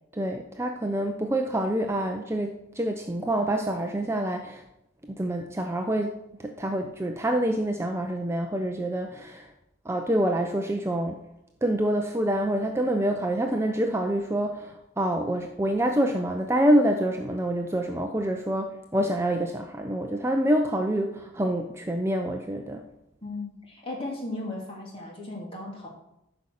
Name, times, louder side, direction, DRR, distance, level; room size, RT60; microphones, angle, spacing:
voice 1, 0.1-4.6 5.1-9.5 9.8-11.2 11.6-22.9, right 1 dB, 15° right, 3 dB, 0.6 m, -26 dB
voice 2, 23.2-25.9, left 2 dB, 25° left, -2 dB, 2.8 m, -36 dB
14.0 x 5.6 x 6.4 m, 0.86 s
head